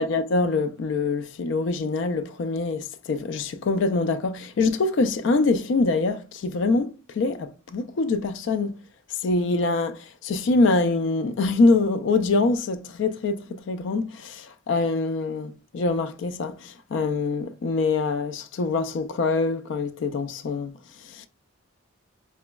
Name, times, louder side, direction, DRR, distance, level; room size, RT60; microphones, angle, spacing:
voice 1, 0.0-8.8 9.2-20.7 21.0-21.3, left 3 dB, 60° left, 0.3 m, -24 dB
4.2 x 2.9 x 2.2 m
head